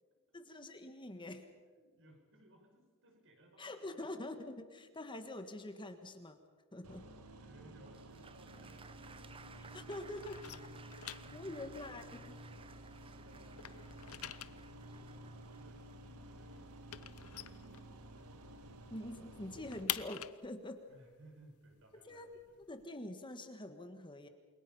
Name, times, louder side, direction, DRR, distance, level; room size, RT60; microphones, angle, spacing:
voice 1, 0.3-1.5 3.6-6.4 6.7-7.1 9.6-10.5 11.3-12.4 18.9-20.9 22.0-22.3 22.7-24.3, left 1 dB, 20° left, 7 dB, 1.6 m, -45 dB
voice 2, 1.7-4.1 7.4-9.7 10.5-11.9 12.8-14.2 14.5-17.9 20.9-22.6, right 1 dB, 60° right, 3 dB, 5.4 m, -63 dB
sound 1, 6.8-19.8, right 1 dB, 80° right, 1.7 m, -53 dB
Applause, 7.9-16.8, right 5 dB, 25° right, 0.7 m, -59 dB
sound 2, 8.1-9.6 9.9-13.1 13.4-18.4 18.7-18.8 19.1-22.8, left 13 dB, 70° left, 0.8 m, -46 dB
29.0 x 22.5 x 5.6 m, 1.4 s
head